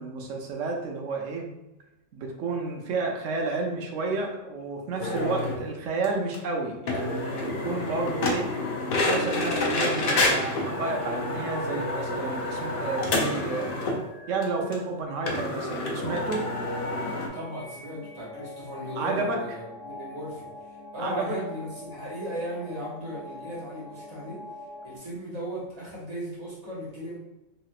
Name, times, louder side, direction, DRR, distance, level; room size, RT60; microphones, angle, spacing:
voice 1, 0.0-1.5 2.1-8.5 8.8-13.8 14.3-16.4 19.0-19.4 21.0-21.4, right 3 dB, 75° right, 1 dB, 0.9 m, -31 dB
sound 1, 5.0-5.6 6.0-6.1 6.3-6.4 6.9-14.0 14.4-14.5 14.7-14.8 15.3-17.3, left 2 dB, 60° left, 0.6 m, -28 dB
sound 2, 9.5-25.0, left 2 dB, 75° left, 1.0 m, -45 dB
voice 2, 17.3-20.5 20.9-24.4 24.8-27.2, equal, 35° right, -8 dB, 1.2 m, -36 dB
3.1 x 2.7 x 2.3 m, 0.95 s
omnidirectional pair, 1.3 m